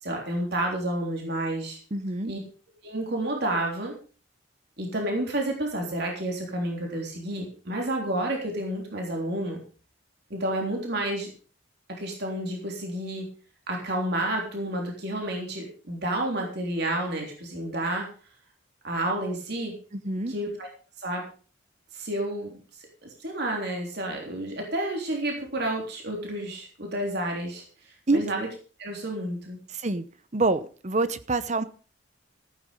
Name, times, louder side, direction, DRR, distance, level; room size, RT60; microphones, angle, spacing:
voice 1, 0.0-1.8 2.2-2.4 2.8-4.0 4.8-9.6 10.3-11.3 11.9-13.3 13.7-18.1 18.8-19.7 20.3-20.7 21.0-21.2 21.9-22.6 23.0-28.5 28.8-29.6, right 1 dB, 55° right, 0 dB, 3.5 m, -30 dB
voice 2, 1.9-2.3 19.9-20.3 28.1-28.2 29.7-30.0 30.3-31.6, right 2 dB, 35° right, 14 dB, 0.9 m, -26 dB
14.5 x 9.5 x 5.1 m, 0.38 s
head